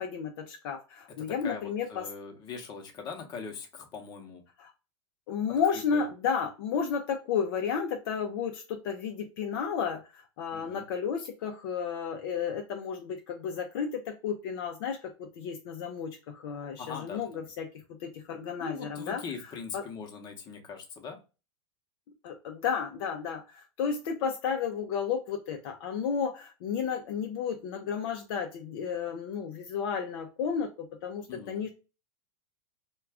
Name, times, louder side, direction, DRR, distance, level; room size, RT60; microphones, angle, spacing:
voice 1, 0.0-2.0 4.6-4.7 5.3-19.2 19.7-19.8 22.2-31.7, left 6 dB, 60° left, 4 dB, 0.5 m, -32 dB
voice 2, 1.4-4.4 5.7-6.1 10.5-10.8 16.8-17.4 18.6-21.2 31.3-31.6, left 5 dB, 30° left, 3 dB, 0.8 m, -41 dB
2.4 x 2.2 x 3.3 m, 0.30 s
hypercardioid pair, 130°, 14 cm